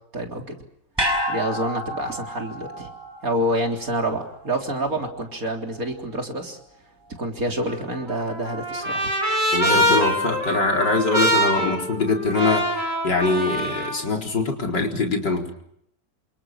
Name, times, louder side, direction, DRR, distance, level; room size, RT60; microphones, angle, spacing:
voice 1, 0.1-0.6 1.3-2.9 3.2-6.6 7.2-9.1, right 1 dB, 50° right, 3 dB, 4.1 m, -27 dB
sound 1, 1.0-5.3 5.6-5.7, equal, 10° right, 7.6 m, -30 dB
Trumpet, 7.7-14.0, equal, 35° right, 7.4 m, -24 dB
voice 2, 9.5-12.8 13.0-15.5, left 3 dB, 70° left, 2 dB, 4.8 m, -23 dB
28.5 x 26.0 x 6.2 m, 0.74 s
omnidirectional pair, 2.0 m